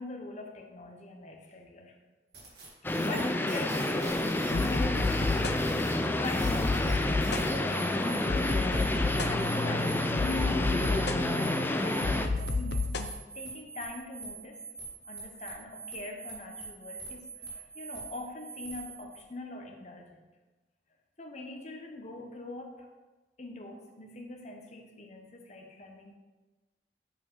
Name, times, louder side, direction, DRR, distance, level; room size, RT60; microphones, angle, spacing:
voice 1, 0.0-2.0 3.0-7.0 7.3-8.9 9.3-12.9 13.3-14.6 15.0-20.2 21.2-22.9 23.4-26.2, left 2 dB, 40° left, 2 dB, 1.1 m, -44 dB
sound 1, 2.3-19.2, right 4 dB, 65° right, 2.1 m, -45 dB
sound 2, 2.8-12.3, left 1 dB, 10° left, 0.4 m, -29 dB
sound 3, 4.5-13.1, left 3 dB, 65° left, 0.6 m, -31 dB
7.2 x 5.3 x 5.6 m, 1.2 s
head